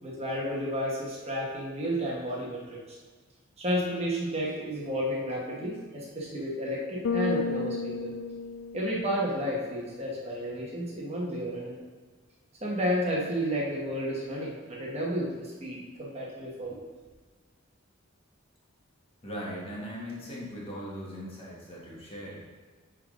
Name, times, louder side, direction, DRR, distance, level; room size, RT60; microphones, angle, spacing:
voice 1, 0.0-3.0 3.6-8.1 8.7-11.8 12.6-16.8, equal, 30° right, -3 dB, 1.2 m, -32 dB
Bass guitar, 7.0-9.4, left 4 dB, 70° left, 0.4 m, -32 dB
voice 2, 19.2-22.4, equal, 25° left, -4 dB, 1.5 m, -39 dB
10.0 x 3.8 x 3.8 m, 1.4 s
head